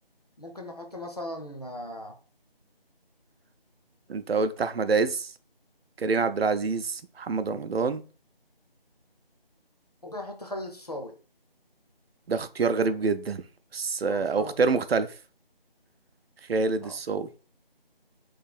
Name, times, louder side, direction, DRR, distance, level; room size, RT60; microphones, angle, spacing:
voice 1, 0.4-2.2 4.6-4.7 10.0-11.2 14.1-14.5 16.8-17.0, left 1 dB, 40° left, 0.6 m, -38 dB
voice 2, 4.1-5.3 6.0-8.0 12.3-13.4 13.7-15.1 16.5-17.3, right 4 dB, 80° right, 0.5 m, -26 dB
3.1 x 2.4 x 4.0 m
figure-of-eight pair, 175°, 30 cm